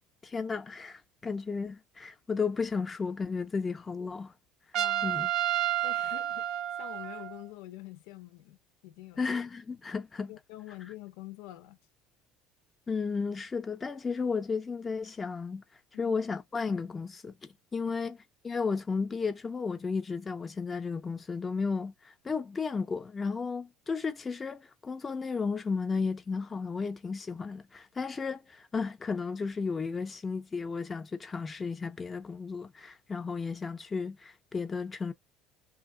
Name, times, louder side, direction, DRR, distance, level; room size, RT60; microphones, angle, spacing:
voice 1, 0.2-4.3 5.0-5.3 9.2-10.3 12.9-15.6 16.0-18.2 18.4-35.1, left 5 dB, 20° left, 0.4 m, -33 dB
voice 2, 4.7-5.2 5.8-9.3 10.3-11.8 15.9-16.2 17.9-18.0, left 16 dB, 85° left, 0.5 m, -46 dB
Trumpet, 4.7-7.4, right 12 dB, 55° right, 0.4 m, -30 dB
2.7 x 2.4 x 3.7 m
cardioid pair, 130°, 0 cm